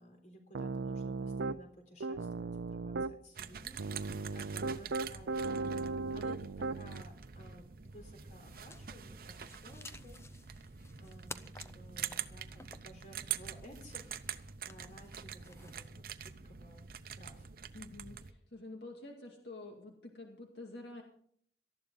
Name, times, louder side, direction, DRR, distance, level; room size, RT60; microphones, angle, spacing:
voice 1, 0.0-10.2 10.5-10.7 11.0-17.5, equal, 45° left, 4 dB, 3.9 m, -56 dB
Piano, 0.5-1.6 2.0-3.1 3.8-7.0, right 3 dB, 90° right, 0.5 m, -37 dB
sound 1, 3.3-18.3, right 8 dB, 55° right, 0.7 m, -45 dB
sound 2, 8.4-15.9, left 3 dB, 15° left, 0.5 m, -54 dB
voice 2, 17.7-21.0, left 2 dB, 75° left, 1 dB, 2.2 m, -48 dB
18.5 x 14.0 x 3.9 m, 0.62 s
head